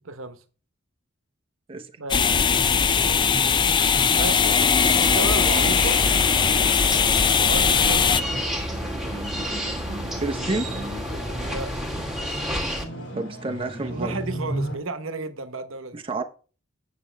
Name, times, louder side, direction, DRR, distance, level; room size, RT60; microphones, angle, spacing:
voice 1, 0.0-0.4 2.0-2.4 4.1-6.0 7.2-8.6 11.4-11.7 13.9-16.0, right 3 dB, 70° right, 1.0 m, -33 dB
sound 1, 2.1-8.2, left 6 dB, 25° left, 0.3 m, -20 dB
sound 2, 2.4-14.8, equal, 70° left, 3.0 m, -36 dB
sound 3, 4.8-12.8, equal, ahead, 1.6 m, -31 dB
voice 2, 10.2-10.7 13.2-14.2 15.9-16.2, right 2 dB, 25° right, 0.7 m, -29 dB
9.3 x 6.6 x 3.4 m
head